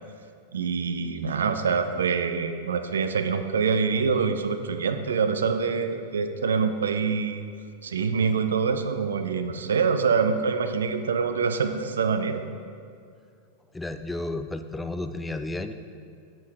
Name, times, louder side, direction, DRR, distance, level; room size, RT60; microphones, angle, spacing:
voice 1, 0.5-7.4 7.8-12.4, right 5 dB, 65° right, 8 dB, 0.5 m, -25 dB
voice 2, 13.7-15.7, left 2 dB, 10° left, 9 dB, 0.4 m, -32 dB
7.5 x 7.4 x 4.6 m, 2.3 s
figure-of-eight pair, 90°, 0 cm